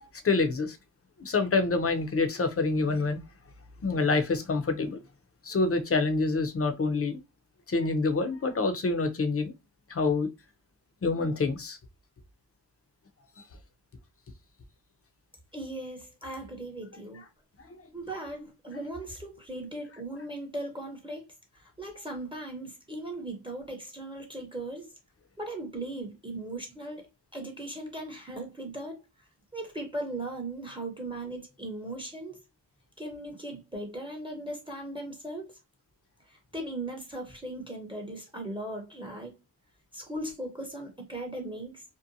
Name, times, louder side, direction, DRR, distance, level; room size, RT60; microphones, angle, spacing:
voice 1, 0.2-0.8 1.2-3.2 3.8-5.0 5.4-7.2 7.7-9.5 9.9-10.3 11.0-11.8, left 3 dB, 35° left, 0.6 m, -26 dB
voice 2, 15.5-17.2 17.9-21.2 21.5-24.9 25.4-27.0 27.3-29.0 29.5-32.4 33.0-35.6 36.3-39.4 39.9-41.8, right 1 dB, 10° right, 0.7 m, -38 dB
2.7 x 2.1 x 2.5 m
cardioid pair, 75°, 43 cm